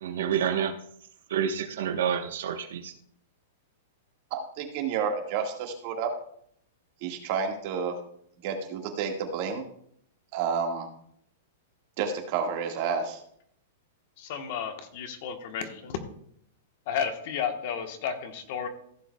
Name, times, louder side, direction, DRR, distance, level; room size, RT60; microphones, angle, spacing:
voice 1, 0.0-0.7 1.3-2.9, right 8 dB, 75° right, 7 dB, 1.0 m, -28 dB
voice 2, 4.3-6.1 7.0-8.0 8.4-9.6 10.3-10.9 12.0-13.2, right 6 dB, 40° right, 3 dB, 1.7 m, -30 dB
voice 3, 14.2-16.0 16.9-18.7, left 7 dB, 45° left, 7 dB, 1.1 m, -32 dB
15.5 x 7.8 x 2.3 m, 0.67 s
supercardioid pair, 165°, 0 cm